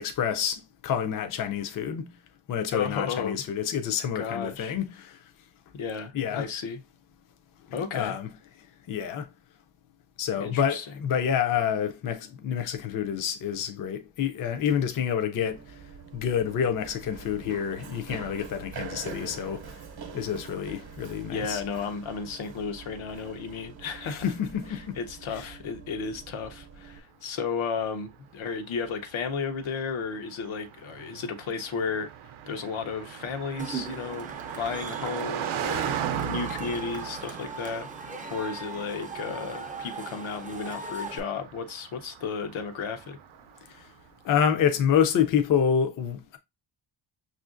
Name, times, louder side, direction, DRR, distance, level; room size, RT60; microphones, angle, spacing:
voice 1, 0.0-2.1 2.5-5.2 6.1-6.5 7.9-8.3 8.9-9.3 10.2-15.8 16.1-19.8 20.1-21.6 24.1-25.0 25.3-25.5 43.7-43.9 44.2-46.4, left 8 dB, 45° left, 0.4 m, -28 dB
voice 2, 2.7-3.4 4.1-4.7 5.7-6.8 7.7-8.1 10.4-10.9 21.3-24.3 24.7-32.1 32.5-37.9 38.3-43.2, left 5 dB, 80° left, 0.8 m, -33 dB
Run, 15.4-27.0, right 6 dB, 55° right, 0.7 m, -44 dB
Car passing by, 27.6-44.0, right 9 dB, 85° right, 0.6 m, -38 dB
Cheering / Crowd, 33.6-41.2, right 4 dB, 20° right, 0.4 m, -39 dB
6.1 x 2.5 x 2.4 m
wide cardioid pair, 165°, 47 cm